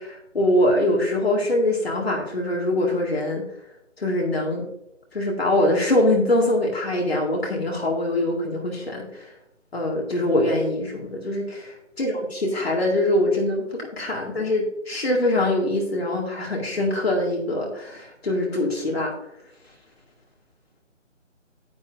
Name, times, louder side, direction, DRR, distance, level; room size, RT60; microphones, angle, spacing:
voice 1, 0.0-3.4 4.0-4.6 5.1-9.3 9.7-19.1, left 1 dB, 55° left, -2 dB, 2.1 m, -23 dB
9.9 x 9.5 x 2.6 m, 0.80 s
hypercardioid pair, 180°, 38 cm